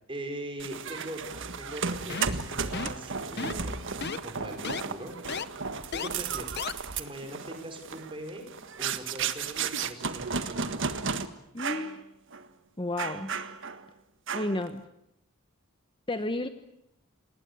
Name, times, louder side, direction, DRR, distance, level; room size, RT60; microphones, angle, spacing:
voice 1, 0.1-3.9 4.2-5.6 5.9-8.5 8.8-10.8, right 1 dB, 25° right, 5 dB, 5.2 m, -41 dB
sound 1, 0.6-11.3 11.6-11.9 12.3-12.5 13.0-13.8 14.3-14.7, right 5 dB, 60° right, 1.6 m, -34 dB
sound 2, 2.1-2.4 2.7-3.0 3.4-3.7 4.0-4.2 4.6-4.8 5.3-5.4 5.9-6.1 6.6-6.7, left 5 dB, 50° left, 1.0 m, -34 dB
voice 2, 11.5-12.0 12.8-13.3 14.3-14.8 16.1-16.5, left 2 dB, 25° left, 9 dB, 1.1 m, -31 dB
28.5 x 20.0 x 8.4 m, 0.82 s
head